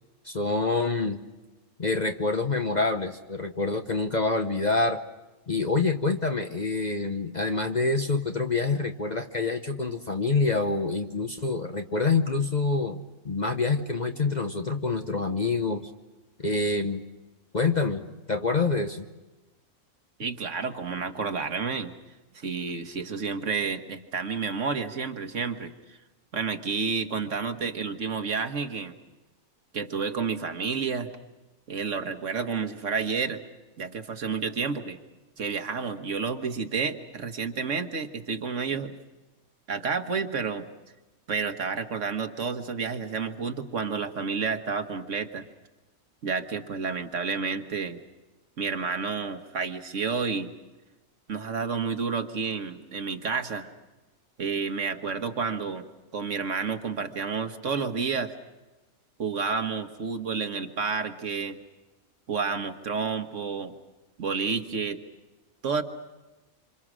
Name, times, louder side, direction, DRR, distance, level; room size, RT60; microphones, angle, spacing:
voice 1, 0.2-1.2 1.8-5.0 5.5-15.9 16.4-17.0 17.5-19.0, left 3 dB, 35° left, 5 dB, 0.9 m, -26 dB
voice 2, 20.2-22.0 22.3-26.0 26.3-29.0 29.7-31.1 31.7-33.4 33.8-35.0 35.4-39.0 39.7-40.7 41.3-45.5 46.2-48.0 48.6-50.5 51.3-53.7 54.4-58.4 59.2-61.6 62.3-63.7 64.2-65.0 65.6-65.8, right 5 dB, 60° right, 7 dB, 1.5 m, -30 dB
27.0 x 26.5 x 6.2 m, 1.1 s
omnidirectional pair, 1.5 m